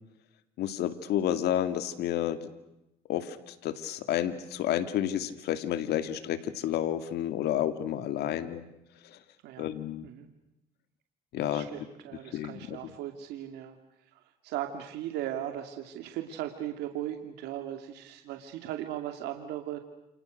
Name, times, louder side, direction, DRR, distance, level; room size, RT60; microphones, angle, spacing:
voice 1, 0.6-2.5 3.1-8.7 9.6-10.1 11.3-11.7 12.3-12.8, left 11 dB, 80° left, 10 dB, 2.3 m, -30 dB
voice 2, 8.2-8.5 9.4-9.7 10.0-10.3 11.4-13.8 14.1-19.8, right 12 dB, 90° right, 6 dB, 2.6 m, -38 dB
29.5 x 29.0 x 6.6 m, 0.91 s
cardioid pair, 100°, 17 cm